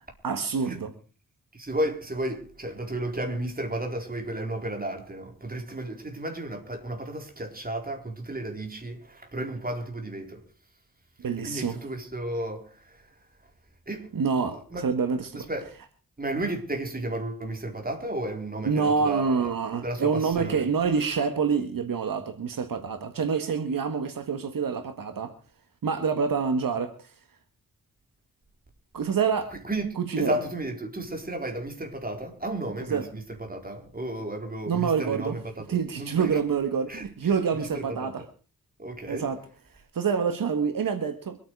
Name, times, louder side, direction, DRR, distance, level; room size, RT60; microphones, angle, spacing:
voice 1, 0.2-0.9 11.2-11.8 14.1-15.5 18.6-25.3 25.8-26.9 28.9-29.5 30.0-30.4 32.9-33.0 34.7-35.4 35.7-38.2 39.1-39.4 39.9-41.4, right 6 dB, 75° right, 1.8 m, -27 dB
voice 2, 1.5-10.4 11.4-13.0 13.9-14.1 14.7-14.8 15.3-15.7 16.2-19.5 19.8-20.7 29.6-29.9 30.2-35.6 35.9-36.4 36.9-37.0 37.5-38.1 38.8-39.3, right 1 dB, 25° right, 4.3 m, -33 dB
25.0 x 9.3 x 4.8 m
wide cardioid pair, 105°, 34 cm